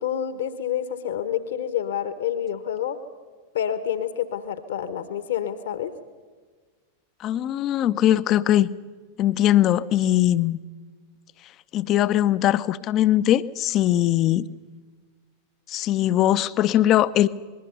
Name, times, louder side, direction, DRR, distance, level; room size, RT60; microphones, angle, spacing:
voice 1, 0.0-3.0 3.5-5.9, left 9 dB, 60° left, 12 dB, 1.3 m, -28 dB
voice 2, 7.2-8.7 9.2-10.6 11.7-14.5 15.7-17.3, left 12 dB, 35° left, 16 dB, 0.7 m, -20 dB
26.5 x 21.0 x 5.6 m, 1.5 s
figure-of-eight pair, 90°, 0 cm